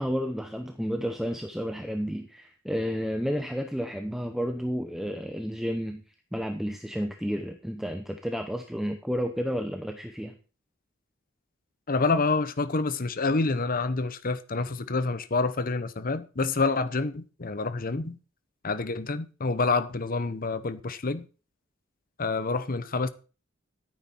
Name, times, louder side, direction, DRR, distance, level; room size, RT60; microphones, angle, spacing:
voice 1, 0.0-6.0 6.3-10.4, equal, ahead, 0.9 m, -31 dB
voice 2, 11.9-18.2 18.6-21.3 22.2-23.1, left 3 dB, 45° left, 0.9 m, -27 dB
14.0 x 9.0 x 4.5 m
head